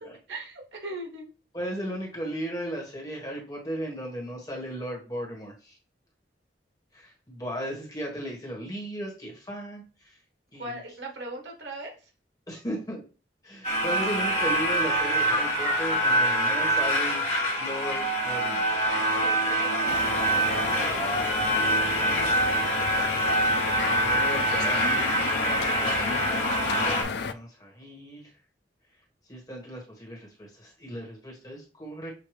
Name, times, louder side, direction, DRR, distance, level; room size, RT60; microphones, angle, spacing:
voice 1, 0.3-1.3 10.6-12.0 19.0-21.4 22.0-23.1, right 1 dB, 85° right, 1 dB, 1.4 m, -40 dB
voice 2, 1.5-5.7 6.9-9.8 10.5-10.8 12.5-13.0 13.4-17.2 17.6-18.6 23.8-24.9 25.4-26.0 26.8-28.3 29.3-32.1, right 1 dB, 20° left, -1 dB, 1.5 m, -36 dB
sound 1, 13.6-27.0, right 1 dB, 40° left, 1.5 m, -25 dB
sound 2, 19.9-27.3, left 5 dB, 70° left, 0.4 m, -33 dB
6.5 x 2.6 x 3.2 m, 0.34 s
head